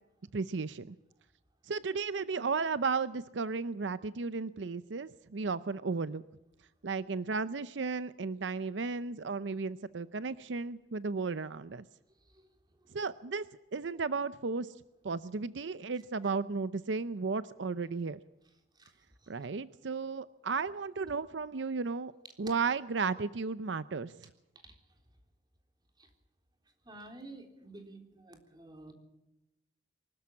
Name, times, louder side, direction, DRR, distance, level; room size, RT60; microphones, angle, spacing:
voice 1, 0.3-0.9 1.7-6.2 6.8-11.8 12.9-13.4 13.7-14.7 15.0-18.2 19.3-22.1 22.4-24.1, right 4 dB, 80° right, 15 dB, 0.6 m, -34 dB
voice 2, 26.9-28.9, right 2 dB, 25° right, 4 dB, 3.6 m, -50 dB
23.5 x 13.0 x 8.5 m, 0.94 s
head